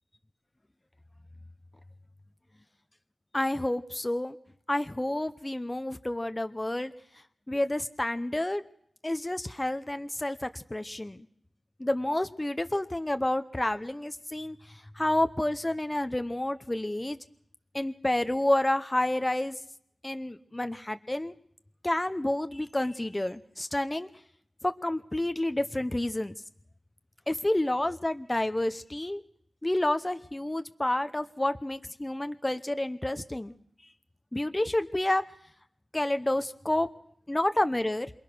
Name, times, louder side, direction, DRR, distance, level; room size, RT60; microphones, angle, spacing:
voice 1, 3.3-4.4 4.7-6.9 7.5-8.6 9.0-11.3 11.8-17.2 17.7-19.6 20.0-21.3 21.8-24.1 24.6-26.3 27.3-29.2 29.6-33.5 34.3-35.2 35.9-36.9 37.3-38.1, left 1 dB, 20° left, 10 dB, 0.9 m, -29 dB
27.5 x 20.5 x 6.3 m, 0.69 s
wide cardioid pair, 95°, 0 cm